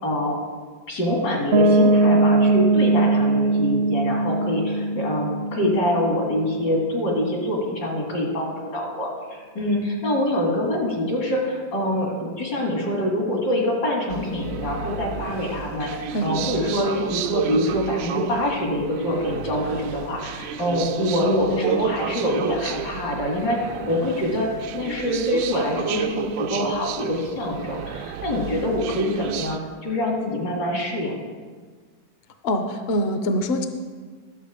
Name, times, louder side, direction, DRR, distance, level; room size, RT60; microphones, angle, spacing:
voice 1, 0.0-0.4 0.9-23.6 23.9-24.5 24.7-31.2, left 1 dB, 75° left, -2 dB, 2.9 m, -25 dB
Piano, 1.5-7.2, right 2 dB, 65° right, 0.7 m, -21 dB
sound 1, 14.1-29.6, right 8 dB, 85° right, 1.3 m, -31 dB
voice 2, 32.4-33.7, equal, 55° left, 7 dB, 0.7 m, -24 dB
12.0 x 6.8 x 4.9 m, 1.5 s
omnidirectional pair, 1.9 m